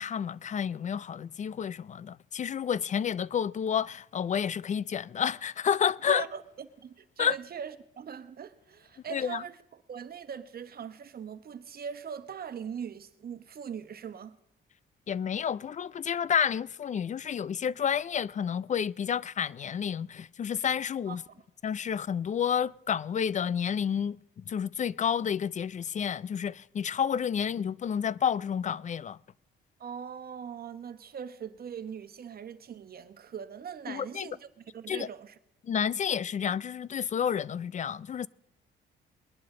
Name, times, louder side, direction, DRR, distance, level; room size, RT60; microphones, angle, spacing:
voice 1, 0.0-6.2 7.2-7.3 9.1-9.4 15.1-21.2 21.6-29.2 33.9-34.3 34.9-35.1 35.6-38.3, left 8 dB, 40° left, 0.4 m, -30 dB
voice 2, 6.1-14.4 21.1-21.4 29.8-35.3, right 7 dB, 50° right, 1.2 m, -41 dB
20.5 x 11.5 x 3.8 m
cardioid pair, 90°, 20 cm